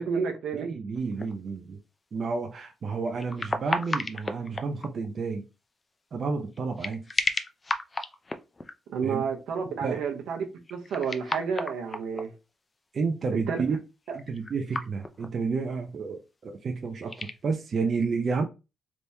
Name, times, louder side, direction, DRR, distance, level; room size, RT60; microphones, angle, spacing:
voice 1, 0.0-0.7 8.9-12.3 13.5-13.6 14.1-14.2, right 6 dB, 75° right, 0.9 m, -30 dB
voice 2, 0.5-1.8 2.1-5.4 6.1-7.1 9.0-9.2 9.8-10.0 12.9-13.8 14.1-18.4, right 4 dB, 50° right, 0.6 m, -30 dB
sound 1, 0.9-1.5 3.0-5.1 6.5-8.7 10.6-12.3 14.1-15.4 15.7-15.8 16.9-17.4, left 2 dB, 25° left, 0.4 m, -33 dB
3.4 x 3.0 x 2.7 m
cardioid pair, 90°, 0 cm